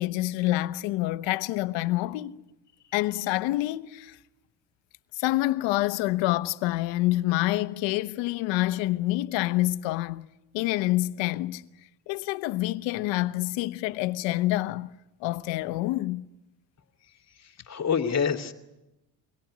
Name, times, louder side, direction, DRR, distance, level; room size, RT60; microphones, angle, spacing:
voice 1, 0.0-2.4 2.9-4.2 5.2-10.3 10.5-11.7 12.1-14.9 15.2-16.3, left 17 dB, 75° left, 1.0 m, -27 dB
voice 2, 17.4-18.5, left 6 dB, 35° left, 2.4 m, -27 dB
23.5 x 17.5 x 9.9 m
supercardioid pair, 90°, 45 cm